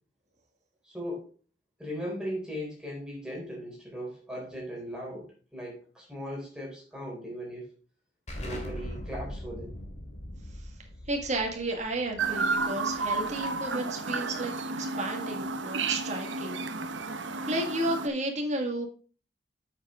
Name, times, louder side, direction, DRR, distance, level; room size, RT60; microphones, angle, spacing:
voice 1, 0.8-1.3 1.8-7.7 8.4-9.8, equal, 5° right, -4 dB, 4.0 m, -38 dB
Explosion, 8.3-13.7, left 1 dB, 40° left, 2.4 m, -41 dB
voice 2, 11.1-14.5 14.8-16.6 17.0-17.2 17.5-18.9, right 1 dB, 40° right, 2 dB, 1.9 m, -32 dB
Chirp tweet, 12.2-18.1, right 3 dB, 75° right, 0.9 m, -32 dB
8.7 x 7.3 x 3.7 m, 0.39 s
head